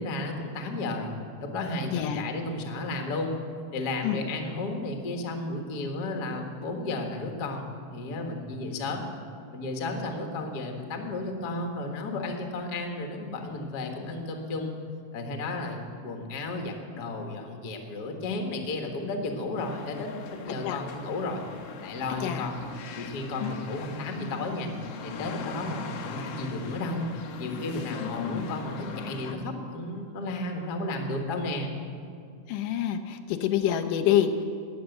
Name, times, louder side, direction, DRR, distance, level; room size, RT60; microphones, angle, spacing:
voice 1, 0.0-3.3 3.7-7.6 7.9-9.0 9.5-14.7 15.1-21.4 21.8-22.6 22.9-24.7 25.0-27.1 27.4-31.7, left 2 dB, 45° left, 3 dB, 1.5 m, -33 dB
voice 2, 1.9-2.2 4.0-4.2 20.6-20.8 22.2-22.4 23.4-23.5 28.0-28.5 32.5-34.4, left 10 dB, 85° left, 7 dB, 2.4 m, -27 dB
sound 1, 19.6-29.3, left 6 dB, 65° left, 1.7 m, -41 dB
19.5 x 6.9 x 8.0 m, 2.3 s
omnidirectional pair, 3.6 m